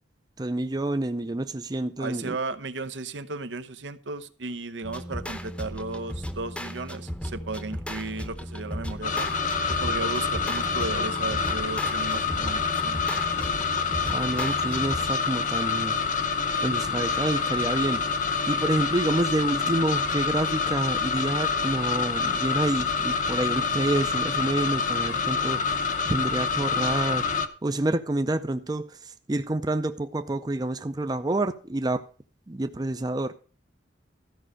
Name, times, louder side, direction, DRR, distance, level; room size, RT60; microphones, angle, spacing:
voice 1, 0.4-2.4 14.1-16.0 16.6-18.1 18.5-25.8 26.1-27.2 27.6-32.0 32.5-33.3, right 2 dB, 20° right, 0.5 m, -28 dB
voice 2, 2.0-9.3 9.8-13.0, right 3 dB, 80° right, 0.8 m, -35 dB
sound 1, 4.8-15.3, equal, 5° left, 0.8 m, -36 dB
sound 2, 9.0-27.5, left 5 dB, 45° left, 0.8 m, -27 dB
13.5 x 5.4 x 6.3 m
head